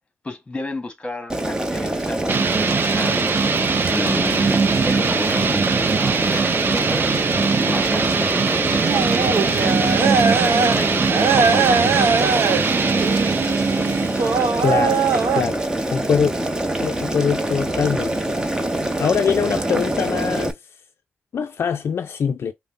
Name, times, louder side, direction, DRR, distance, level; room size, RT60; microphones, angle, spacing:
voice 1, 0.2-3.4 3.9-7.1 7.7-12.4, left 2 dB, 25° left, 1.2 m, -32 dB
Boiling, 1.3-20.5, right 1 dB, 15° right, 0.8 m, -25 dB
sound 1, 2.3-14.8, right 5 dB, 50° right, 0.5 m, -21 dB
sound 2, 8.8-10.8 11.1-15.4, right 5 dB, 75° right, 0.9 m, -21 dB
voice 2, 14.6-15.1 15.3-16.3 16.8-18.6 19.0-20.5 21.3-22.5, left 7 dB, 65° left, 0.4 m, -23 dB
5.3 x 2.1 x 2.5 m
cardioid pair, 100°, 5 cm